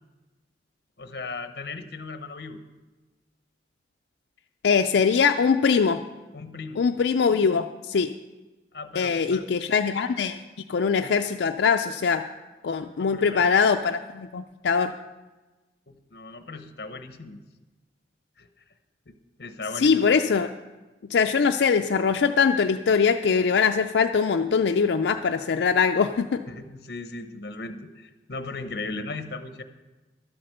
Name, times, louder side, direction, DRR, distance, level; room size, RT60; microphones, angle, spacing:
voice 1, 1.0-2.6 6.3-6.8 8.7-9.4 12.8-13.5 15.9-17.4 18.4-18.5 19.1-19.2 19.4-20.2 26.5-29.6, left 3 dB, 65° left, 9 dB, 0.9 m, -37 dB
voice 2, 4.6-6.0 6.8-8.1 9.0-10.4 10.7-12.2 12.6-14.9 19.8-20.5 21.1-26.4, left 5 dB, 90° left, 5 dB, 0.4 m, -22 dB
12.0 x 7.9 x 6.6 m, 1.2 s
head